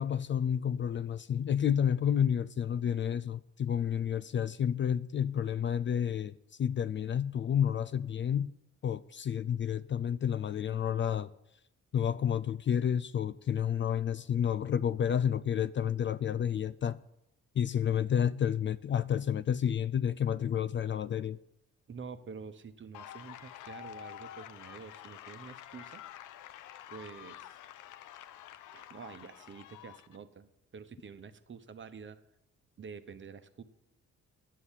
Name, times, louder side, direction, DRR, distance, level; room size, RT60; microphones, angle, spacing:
voice 1, 0.0-8.5 8.8-11.3 11.9-17.0 17.6-21.4, left 8 dB, 40° left, 0.4 m, -30 dB
voice 2, 21.9-26.0 26.9-27.5 28.7-32.2 32.8-33.6, right 5 dB, 40° right, 1.0 m, -48 dB
sound 1, 22.9-30.2, left 11 dB, 80° left, 0.7 m, -48 dB
9.3 x 8.4 x 7.4 m
cardioid pair, 90°, 30 cm